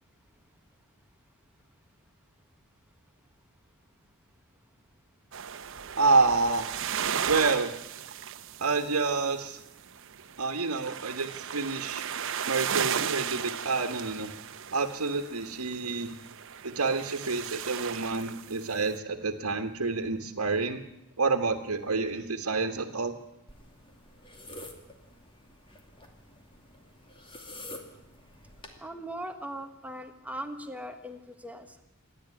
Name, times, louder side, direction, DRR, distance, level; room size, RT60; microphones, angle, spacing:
sound 1, 5.3-9.7 9.9-19.0, right 8 dB, 60° right, 0.9 m, -36 dB
voice 1, 6.0-6.7 7.2-7.7 8.6-9.6 10.4-12.0 12.5-14.3 14.7-16.1 16.6-20.8 21.2-23.1, right 3 dB, 90° right, 5 dB, 1.4 m, -28 dB
sound 2, 23.5-28.8, left 1 dB, 25° left, 2.6 m, -48 dB
voice 2, 28.8-31.8, right 1 dB, 5° right, 6 dB, 1.2 m, -39 dB
27.5 x 10.5 x 9.9 m, 0.89 s
head